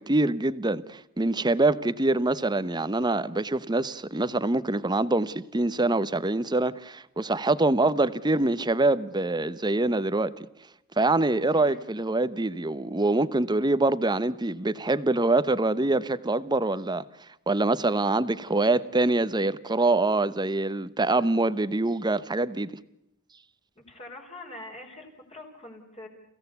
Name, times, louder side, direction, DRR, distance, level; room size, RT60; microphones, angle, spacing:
voice 1, 0.0-10.3 11.0-17.0 17.5-22.7, right 2 dB, 20° right, 0.9 m, -25 dB
voice 2, 23.7-26.1, left 2 dB, 30° left, 4.8 m, -44 dB
29.5 x 16.5 x 8.2 m
head